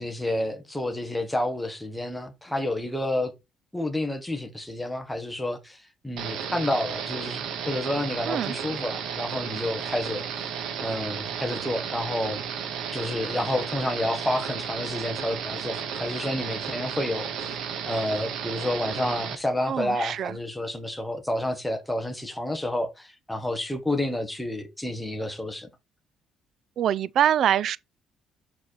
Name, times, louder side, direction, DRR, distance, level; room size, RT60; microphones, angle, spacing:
voice 1, 0.0-3.3 3.7-10.5 10.8-12.4 12.9-17.6 17.9-25.7, left 1 dB, 5° left, 1.2 m, -30 dB
sound 1, 6.2-19.4, right 7 dB, 80° right, 1.5 m, -33 dB
voice 2, 19.7-20.3 26.8-27.8, right 10 dB, 55° right, 0.3 m, -24 dB
7.3 x 4.2 x 4.5 m
cardioid pair, 160°, 0 cm